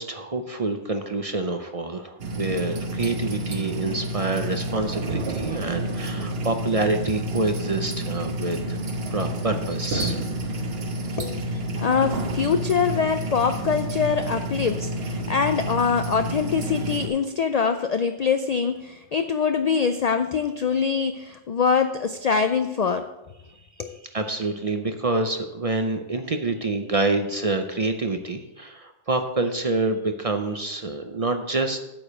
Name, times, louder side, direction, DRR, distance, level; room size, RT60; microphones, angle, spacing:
voice 1, 0.0-8.8 9.1-10.2 11.1-11.3 23.5-23.6 23.9-31.8, right 2 dB, 40° right, 6 dB, 0.6 m, -27 dB
sound 1, 2.2-17.1, right 1 dB, 60° right, 1.3 m, -29 dB
voice 2, 11.2-23.1 23.8-24.0, left 6 dB, 65° left, 9 dB, 0.4 m, -24 dB
8.7 x 5.0 x 7.2 m, 0.98 s
omnidirectional pair, 1.2 m